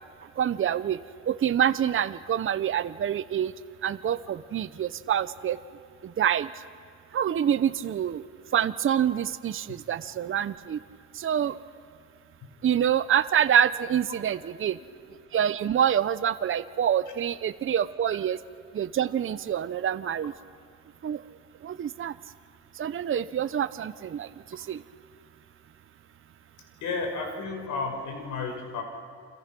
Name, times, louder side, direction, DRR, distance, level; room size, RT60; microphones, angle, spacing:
voice 1, 0.4-1.0 1.3-3.5 3.8-5.6 6.0-6.5 7.1-8.2 8.5-10.8 11.1-11.6 12.6-14.8 15.3-18.4 18.7-20.3 21.0-21.2 21.6-22.1 22.8-24.8, right 9 dB, 45° right, 13 dB, 0.8 m, -26 dB
voice 2, 26.8-28.8, left 4 dB, 80° left, 3 dB, 5.6 m, -32 dB
28.5 x 26.5 x 6.1 m, 2.4 s
cardioid pair, 90°, 30 cm